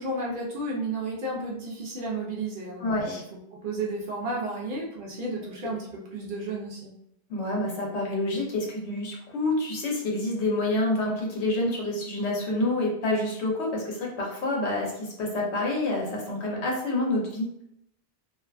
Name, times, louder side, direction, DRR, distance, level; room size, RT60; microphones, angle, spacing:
voice 1, 0.0-3.2 3.5-6.9, right 2 dB, 55° right, -4 dB, 0.7 m, -32 dB
voice 2, 2.8-3.2 7.3-17.5, left 2 dB, 75° left, -2 dB, 1.0 m, -28 dB
2.5 x 2.2 x 2.3 m, 0.76 s
omnidirectional pair, 1.1 m